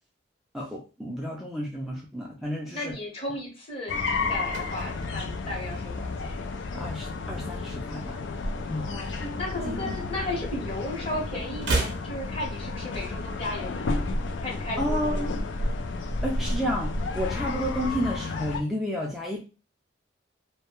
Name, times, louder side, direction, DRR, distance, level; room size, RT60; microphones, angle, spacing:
voice 1, 0.5-2.9 6.7-8.2 8.7-8.9 9.6-9.9 14.8-15.3 16.2-19.4, equal, ahead, -3 dB, 0.3 m, -31 dB
voice 2, 2.7-6.1 8.8-15.3, left 1 dB, 30° left, -2 dB, 0.9 m, -35 dB
sound 1, 3.9-18.6, left 3 dB, 75° left, 0.4 m, -31 dB
sound 2, 4.4-6.8 7.1-7.4 7.7-9.1 9.4-10.8 11.0-13.1 13.4-13.5, right 3 dB, 75° right, 0.6 m, -35 dB
2.2 x 2.1 x 2.9 m, 0.32 s
head